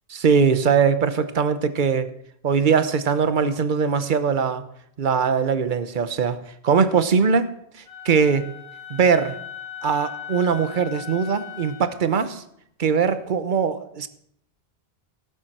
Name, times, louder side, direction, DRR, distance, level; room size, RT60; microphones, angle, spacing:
voice 1, 0.1-2.1 2.4-4.6 5.0-6.4 6.6-7.5 8.0-8.5 8.9-9.4 9.8-12.4 12.8-14.1, right 6 dB, 55° right, 12 dB, 1.0 m, -21 dB
Wind instrument woodwind instrument, 7.9-12.0, left 8 dB, 85° left, 3.0 m, -38 dB
17.0 x 7.3 x 6.1 m, 0.72 s
omnidirectional pair, 1.0 m